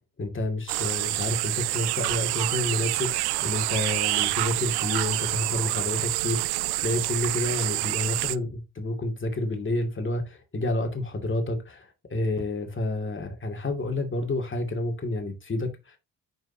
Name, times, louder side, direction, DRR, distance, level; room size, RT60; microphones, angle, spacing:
voice 1, 0.2-16.0, left 2 dB, 30° left, 2.5 m, -29 dB
sound 1, 0.7-8.4, right 20 dB, 75° right, 0.5 m, -27 dB
9.0 x 5.4 x 2.9 m
supercardioid pair, 60°, 39 cm